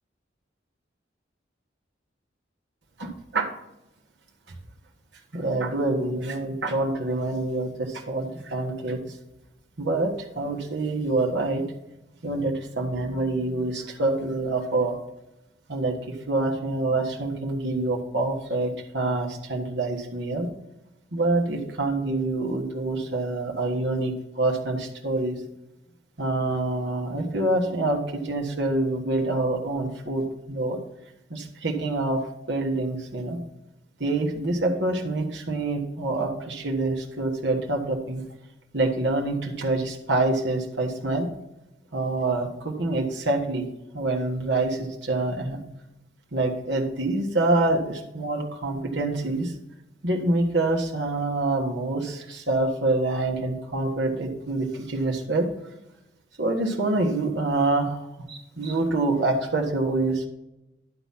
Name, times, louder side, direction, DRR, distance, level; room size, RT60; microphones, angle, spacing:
voice 1, 3.0-3.5 5.3-9.0 9.8-11.6 12.2-15.0 15.7-20.5 21.1-25.4 26.2-30.8 31.3-32.2 32.5-33.4 34.0-38.2 38.7-41.3 41.9-43.7 43.9-45.6 46.3-49.5 50.0-55.5 56.4-60.3, right 2 dB, 75° right, 0 dB, 1.4 m, -26 dB
11.0 x 4.0 x 5.7 m, 0.90 s
head